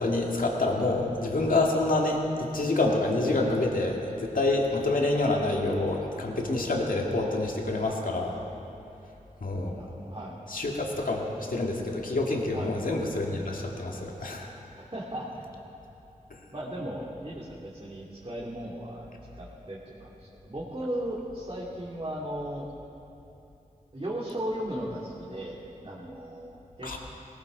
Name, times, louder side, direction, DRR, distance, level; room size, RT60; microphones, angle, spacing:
voice 1, 0.0-8.4 9.4-9.8 10.5-14.5 26.8-27.0, left 2 dB, 75° left, 0 dB, 2.0 m, -27 dB
voice 2, 9.7-10.4 12.5-12.7 14.8-15.4 16.5-19.1 19.3-22.6 23.9-27.0, right 1 dB, 40° right, -6 dB, 2.6 m, -36 dB
18.0 x 17.0 x 3.9 m, 2.8 s
cardioid pair, 40°, 14 cm